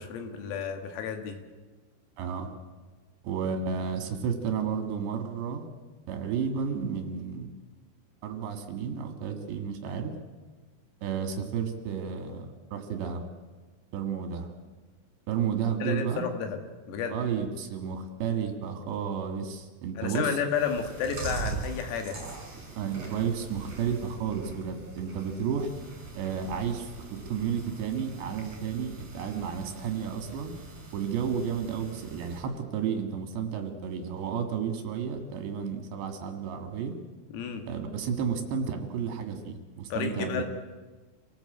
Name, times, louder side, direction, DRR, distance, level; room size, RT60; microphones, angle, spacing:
voice 1, 0.0-1.4 15.8-16.6 16.9-17.2 20.0-22.2 37.3-37.6 39.9-40.4, left 7 dB, 85° left, 5 dB, 4.8 m, -31 dB
voice 2, 2.2-2.5 3.2-5.7 6.1-7.5 8.2-10.1 11.0-13.3 13.9-14.5 15.3-16.3 17.1-20.4 22.7-25.7 26.1-30.5 30.9-37.0 37.7-40.4, right 7 dB, 65° right, 5 dB, 3.7 m, -32 dB
Chewing mastication, 20.5-32.4, right 4 dB, 30° right, 6.2 m, -42 dB
27.0 x 18.5 x 8.0 m, 1.3 s
omnidirectional pair, 6.0 m